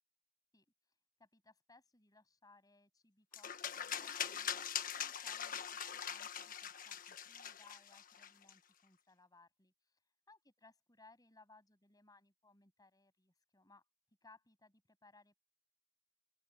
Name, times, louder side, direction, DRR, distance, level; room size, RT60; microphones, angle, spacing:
voice 1, 0.5-4.7 5.0-13.9 14.2-15.4, left 3 dB, 20° left, 7.9 m, -66 dB
sound 1, 3.3-8.5, left 8 dB, 50° left, 1.4 m, -42 dB
open air
head